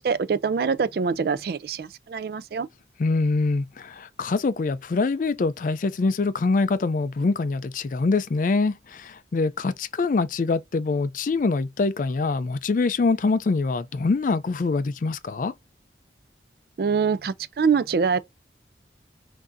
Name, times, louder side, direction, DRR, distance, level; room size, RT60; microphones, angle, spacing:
voice 1, 0.0-2.7 16.8-18.2, right 5 dB, 55° right, 0.4 m, -24 dB
voice 2, 3.0-15.5, left 3 dB, 45° left, 0.4 m, -24 dB
6.0 x 2.7 x 2.5 m
head